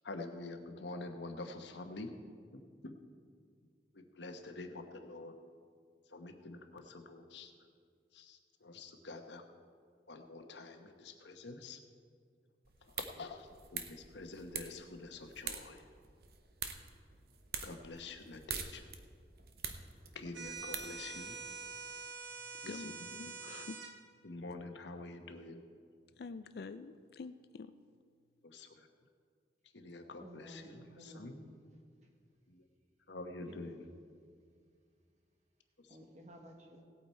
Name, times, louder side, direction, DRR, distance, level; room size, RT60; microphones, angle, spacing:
voice 1, 0.0-2.1 2.5-3.0 3.9-5.3 6.1-7.5 8.1-9.4 10.1-11.8 13.0-15.9 17.6-18.8 20.1-21.5 22.6-22.7 24.2-25.6 28.4-28.9 29.7-31.3 32.5-32.6 33.1-33.8, left 2 dB, 80° left, 5 dB, 1.1 m, -47 dB
sound 1, 12.6-21.5, right 7 dB, 60° right, 0.9 m, -46 dB
sound 2, 20.3-23.9, right 5 dB, 80° right, 1.3 m, -45 dB
voice 2, 22.6-23.8 26.2-27.7, left 4 dB, 60° left, 12 dB, 0.4 m, -47 dB
voice 3, 30.1-32.1 33.4-33.9 35.9-36.8, equal, 40° right, 2 dB, 1.6 m, -54 dB
17.0 x 8.6 x 4.4 m, 2.1 s
head